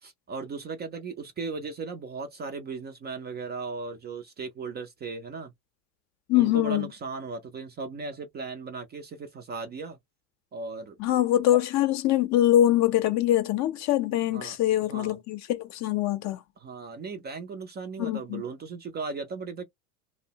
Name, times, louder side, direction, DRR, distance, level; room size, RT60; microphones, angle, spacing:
voice 1, 0.0-5.5 6.3-10.0 10.5-11.0 14.3-14.6 14.9-15.2 16.6-19.6, right 4 dB, 25° right, 0.4 m, -37 dB
voice 2, 6.3-6.9 11.0-16.4 18.0-18.4, left 13 dB, 40° left, 0.5 m, -23 dB
2.6 x 2.1 x 2.7 m
hypercardioid pair, 85°, 44 cm